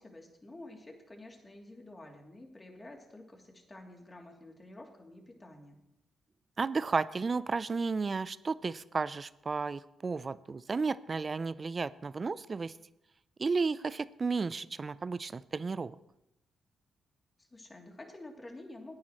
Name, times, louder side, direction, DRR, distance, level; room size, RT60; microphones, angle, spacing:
voice 1, 0.0-5.8 17.4-19.0, left 2 dB, 25° left, 1 dB, 3.0 m, -50 dB
voice 2, 6.6-12.7 13.4-15.9, right 4 dB, 40° right, 18 dB, 0.5 m, -33 dB
16.5 x 9.6 x 3.1 m, 0.88 s
hypercardioid pair, 45°, 0 cm